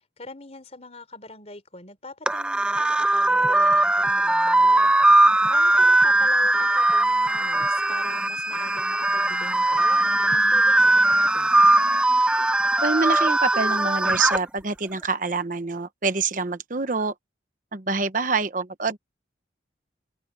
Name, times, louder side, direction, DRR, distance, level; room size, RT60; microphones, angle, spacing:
voice 1, 0.2-5.0 5.5-11.6, left 2 dB, 35° left, 4.0 m, -42 dB
sound 1, 2.3-14.4, right 2 dB, 5° right, 0.4 m, -20 dB
voice 2, 12.8-17.1 17.7-19.0, right 4 dB, 45° right, 1.0 m, -26 dB
open air
head